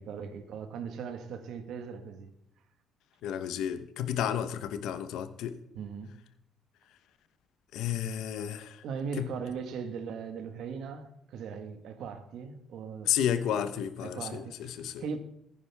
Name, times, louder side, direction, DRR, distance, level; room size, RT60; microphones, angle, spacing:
voice 1, 0.0-2.3 5.7-6.2 8.8-13.2 14.0-15.2, right 6 dB, 65° right, 1.6 m, -39 dB
voice 2, 3.2-5.5 7.7-8.8 9.2-9.3 13.1-15.0, left 9 dB, 80° left, 1.1 m, -32 dB
15.0 x 10.5 x 3.5 m
cardioid pair, 165°, 0 cm